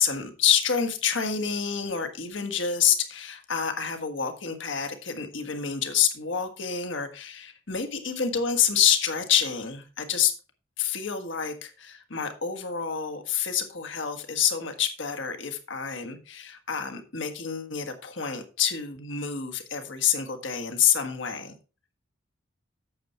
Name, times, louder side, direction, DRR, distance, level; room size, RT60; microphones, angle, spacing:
voice 1, 0.0-10.3 10.8-21.5, left 8 dB, 70° left, 7 dB, 1.5 m, -27 dB
8.7 x 6.8 x 4.4 m, 0.33 s
head